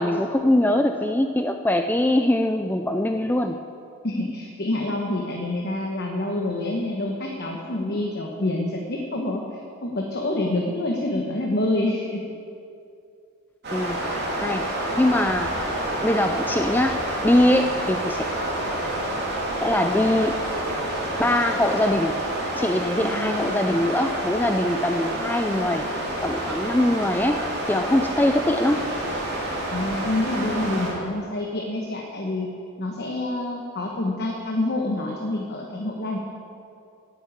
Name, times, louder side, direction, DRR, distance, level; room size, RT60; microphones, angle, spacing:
voice 1, 0.0-3.6 13.7-14.1 14.4-15.8 16.0-18.2 19.6-20.4 20.7-20.9 21.2-22.2 22.5-25.9 26.2-28.9, left 1 dB, 10° left, 6 dB, 0.3 m, -22 dB
voice 2, 4.0-12.2 22.9-23.5 29.7-32.5 32.8-36.2, left 1 dB, 45° left, 0 dB, 1.1 m, -27 dB
sound 1, 13.6-30.9, right 1 dB, 45° right, 3.2 m, -28 dB
10.0 x 8.3 x 8.7 m, 2.5 s
head